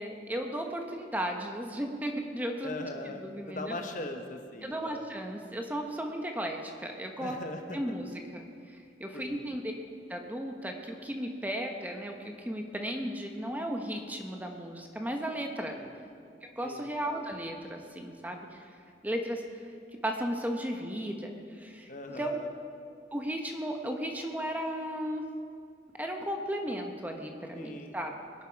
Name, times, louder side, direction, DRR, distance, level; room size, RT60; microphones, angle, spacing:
voice 1, 0.0-3.7 4.6-7.3 7.7-9.7 10.1-12.1 12.4-15.8 16.6-18.7 19.0-19.4 20.0-22.4 23.1-25.3 26.0-28.1, equal, 10° right, 3 dB, 1.1 m, -35 dB
voice 2, 2.6-3.2 3.5-5.0 7.2-7.8 9.1-9.5 15.7-16.0 16.6-16.9 21.9-22.5 27.6-28.0, left 2 dB, 45° left, 5 dB, 1.1 m, -40 dB
20.5 x 11.0 x 4.7 m, 2.3 s
head